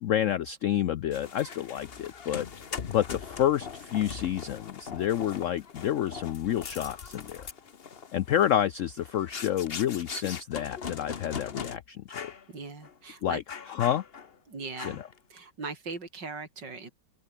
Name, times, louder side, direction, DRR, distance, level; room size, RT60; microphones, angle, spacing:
voice 1, 0.0-2.5 2.9-7.5 8.1-12.3 13.2-13.4 13.7-14.0 14.8-14.9, left 11 dB, 75° left, 0.7 m, -29 dB
sound 1, 1.1-11.8 12.1-12.4 12.8-13.0 13.5-14.4 14.8-15.2, left 6 dB, 40° left, 1.1 m, -41 dB
voice 2, 12.5-13.4 14.5-15.0 15.3-16.9, right 4 dB, 70° right, 4.9 m, -39 dB
open air
omnidirectional pair, 2.0 m